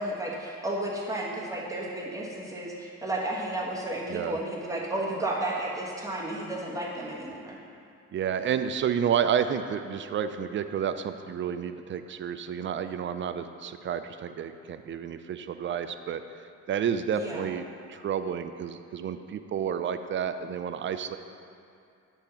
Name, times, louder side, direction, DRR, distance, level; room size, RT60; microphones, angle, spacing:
voice 1, 0.0-7.6 17.1-17.4, right 1 dB, 10° right, -4 dB, 1.4 m, -32 dB
voice 2, 8.1-21.2, right 8 dB, 40° right, 10 dB, 0.4 m, -30 dB
8.4 x 3.5 x 5.6 m, 2.4 s
cardioid pair, 90°, 30 cm